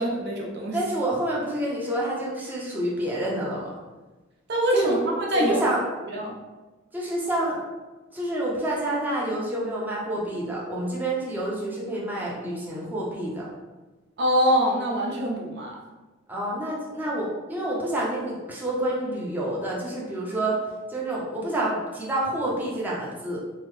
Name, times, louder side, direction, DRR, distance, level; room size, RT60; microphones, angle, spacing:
voice 1, 0.0-0.8 4.5-5.6 6.1-6.3 14.2-15.8, equal, 55° right, -1 dB, 0.5 m, -24 dB
voice 2, 0.7-3.7 4.7-5.0 5.3-5.8 6.9-7.6 8.1-13.5 16.3-20.6 20.9-23.4, right 1 dB, 10° right, -5 dB, 0.6 m, -28 dB
3.7 x 2.0 x 3.1 m, 1.2 s
head